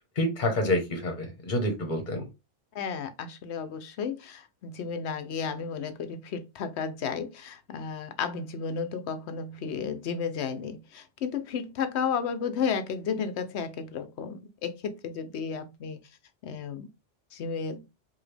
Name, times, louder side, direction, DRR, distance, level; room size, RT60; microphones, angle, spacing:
voice 1, 0.2-2.2, left 1 dB, 45° left, 1.3 m, -28 dB
voice 2, 2.7-16.0 16.4-16.9 17.3-17.8, left 6 dB, 70° left, 1.0 m, -33 dB
4.9 x 2.8 x 3.3 m
omnidirectional pair, 1.2 m